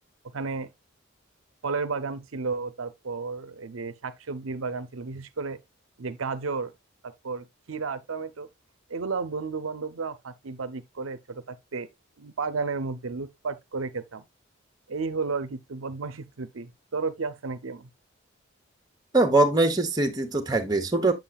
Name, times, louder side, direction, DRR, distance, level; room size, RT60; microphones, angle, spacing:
voice 1, 0.2-0.7 1.6-5.6 6.0-6.7 7.0-8.5 8.9-11.9 12.2-14.2 14.9-17.9, right 4 dB, 80° right, 0.7 m, -33 dB
voice 2, 19.1-21.1, right 2 dB, 20° right, 1.1 m, -22 dB
7.5 x 7.4 x 2.3 m
head